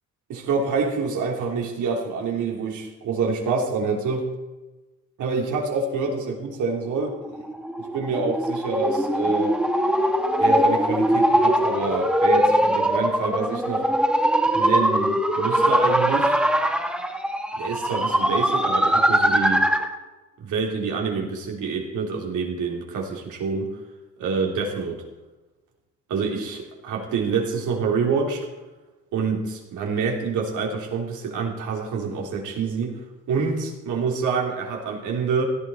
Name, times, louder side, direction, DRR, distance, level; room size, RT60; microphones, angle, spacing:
voice 1, 0.3-4.3 5.2-7.4 7.8-9.5 10.4-13.8 14.5-16.4 17.6-19.6 20.4-23.8 24.2-25.0 26.1-28.5 29.1-33.0 33.3-35.4, right 4 dB, 80° right, 0 dB, 3.3 m, -27 dB
sound 1, 7.2-20.0, right 1 dB, 5° right, 1.5 m, -21 dB
16.5 x 11.5 x 4.5 m, 1.1 s
cardioid pair, 90°, 30 cm